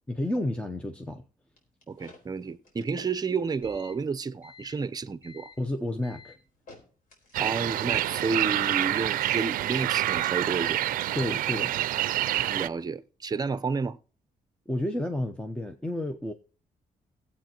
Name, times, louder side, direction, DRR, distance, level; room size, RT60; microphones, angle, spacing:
voice 1, 0.1-1.2 5.6-6.4 11.2-11.7 14.7-16.3, left 1 dB, 10° left, 0.8 m, -31 dB
sound 1, 1.6-7.8, left 3 dB, 80° left, 4.0 m, -52 dB
voice 2, 1.9-5.5 7.4-10.8 12.5-14.0, right 4 dB, 30° right, 0.7 m, -31 dB
sound 2, 7.3-12.7, right 14 dB, 90° right, 0.4 m, -27 dB
19.0 x 8.2 x 3.0 m
cardioid pair, 130°, 14 cm